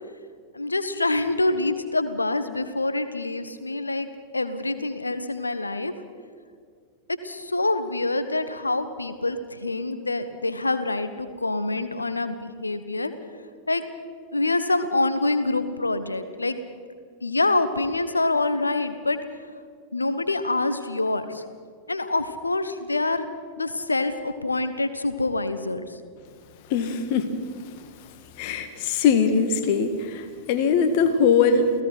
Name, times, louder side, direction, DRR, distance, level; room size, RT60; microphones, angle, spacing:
voice 1, 0.5-4.1 4.3-5.9 7.1-13.1 13.7-13.8 14.3-16.5 17.2-19.2 19.9-21.4 21.9-23.3 23.6-25.8, left 2 dB, 80° left, 11 dB, 1.3 m, -26 dB
voice 2, 26.7-27.4 28.4-31.7, left 5 dB, 45° left, 9 dB, 2.0 m, -21 dB
29.0 x 17.0 x 5.9 m, 2.1 s
figure-of-eight pair, 90°, 0 cm